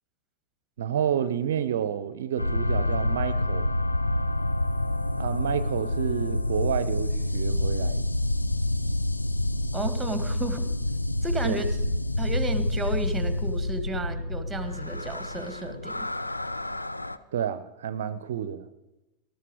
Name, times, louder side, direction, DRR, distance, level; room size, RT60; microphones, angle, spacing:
voice 1, 0.8-3.7 5.2-8.1 11.4-11.6 17.3-18.7, right 9 dB, 60° right, 15 dB, 0.6 m, -29 dB
sound 1, 2.4-17.2, left 1 dB, 85° left, 0.6 m, -28 dB
voice 2, 9.7-10.6 11.2-11.8 12.2-16.0, right 2 dB, 5° right, 10 dB, 1.7 m, -33 dB
19.5 x 12.5 x 4.8 m, 0.98 s
figure-of-eight pair, 90°, 0 cm